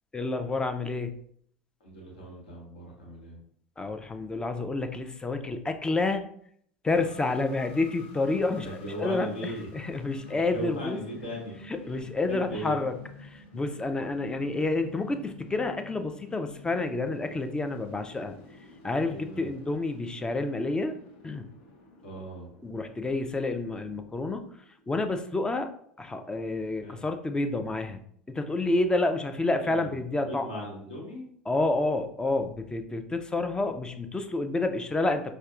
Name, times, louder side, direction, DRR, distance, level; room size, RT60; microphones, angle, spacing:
voice 1, 0.1-1.1 3.8-6.3 6.8-8.7 9.0-11.0 11.7-12.9 13.2-18.4 18.8-20.9 21.2-21.5 22.6-24.5 24.9-25.7 26.0-28.0 28.3-30.5 31.5-35.2, left 2 dB, 15° left, 7 dB, 0.3 m, -29 dB
voice 2, 1.8-3.4 8.3-9.7 10.5-12.8 19.1-19.5 22.0-22.5 26.8-27.0 29.6-31.3, equal, 70° left, -2 dB, 1.2 m, -39 dB
sound 1, 6.9-25.4, left 2 dB, 55° left, 0.8 m, -50 dB
5.1 x 2.1 x 2.4 m, 0.65 s
figure-of-eight pair, 70°, 6 cm